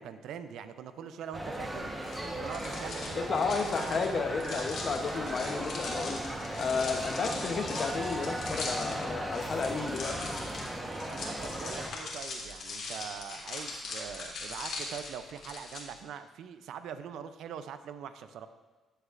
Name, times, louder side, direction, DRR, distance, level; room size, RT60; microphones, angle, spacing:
voice 1, 0.0-1.9 2.3-4.7 6.8-7.2 11.1-18.5, right 8 dB, 80° right, 11 dB, 0.4 m, -43 dB
sound 1, 1.3-11.9, right 1 dB, 15° right, 1.1 m, -37 dB
sound 2, 2.0-15.8, left 3 dB, 70° left, 1.7 m, -41 dB
voice 2, 3.1-6.2 6.6-10.3, left 5 dB, 50° left, 5 dB, 0.8 m, -32 dB
13.0 x 6.6 x 2.5 m, 1.3 s
cardioid pair, 90°, 0 cm